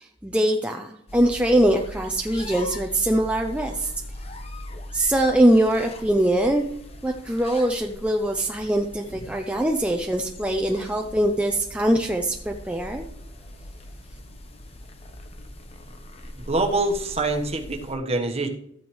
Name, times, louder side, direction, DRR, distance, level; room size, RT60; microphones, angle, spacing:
voice 1, 0.0-3.9 4.9-6.6 7.0-13.1, right 1 dB, 5° right, 2 dB, 0.5 m, -22 dB
sound 1, 1.1-18.0, left 1 dB, 30° left, 1.0 m, -41 dB
voice 2, 16.4-18.5, right 2 dB, 30° right, 3 dB, 1.2 m, -25 dB
14.0 x 9.1 x 3.2 m, 0.73 s
head